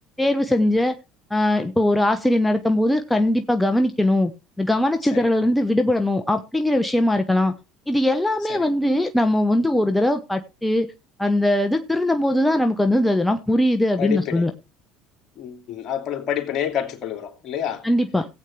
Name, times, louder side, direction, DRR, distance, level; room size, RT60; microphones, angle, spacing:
voice 1, 0.2-0.9 1.3-4.3 4.6-7.5 7.9-10.9 11.2-14.5 17.8-18.3, left 1 dB, 5° left, 1.1 m, -20 dB
voice 2, 14.0-14.5 15.4-17.8, left 10 dB, 50° left, 2.6 m, -28 dB
17.5 x 8.5 x 3.2 m
hypercardioid pair, 70°, 0 cm